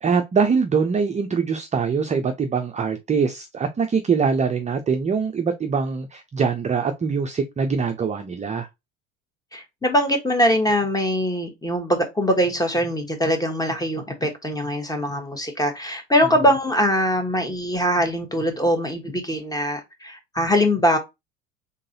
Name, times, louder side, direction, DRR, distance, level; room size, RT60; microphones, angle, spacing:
voice 1, 0.0-8.7, right 5 dB, 15° right, 0.6 m, -23 dB
voice 2, 9.5-21.0, equal, 10° left, 1.4 m, -22 dB
3.8 x 3.8 x 2.8 m
hypercardioid pair, 80°, 40 cm